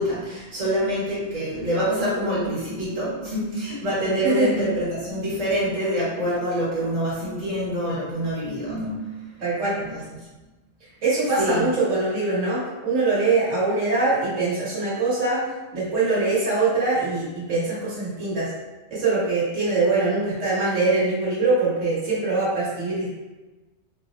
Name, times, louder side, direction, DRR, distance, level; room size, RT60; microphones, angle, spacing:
voice 1, 0.0-9.1 9.9-10.0 11.4-11.6, equal, 90° right, -9 dB, 1.7 m, -26 dB
voice 2, 9.4-9.8 11.0-15.4 15.7-18.5 18.9-23.1, right 3 dB, 75° right, -10 dB, 1.7 m, -23 dB
4.5 x 2.0 x 2.9 m, 1.1 s
omnidirectional pair, 1.3 m